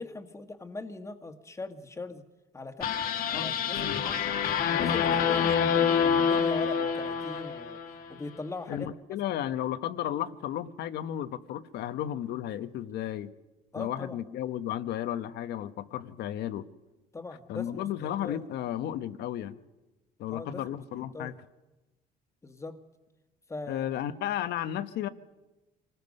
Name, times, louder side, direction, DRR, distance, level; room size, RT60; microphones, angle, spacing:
voice 1, 0.0-2.2 2.5-3.0 3.2-4.2 4.7-7.8 8.1-8.9 13.7-14.2 17.1-18.4 20.3-21.3 22.4-22.8 23.5-23.8, left 3 dB, 15° left, 7 dB, 1.6 m, -40 dB
sound 1, 2.8-8.1, left 7 dB, 60° left, 1.4 m, -27 dB
voice 2, 8.7-13.3 13.8-16.6 17.5-19.5 20.2-21.3 23.7-25.1, left 11 dB, 75° left, 11 dB, 1.0 m, -33 dB
26.0 x 20.0 x 5.4 m, 1.1 s
cardioid pair, 110°, 17 cm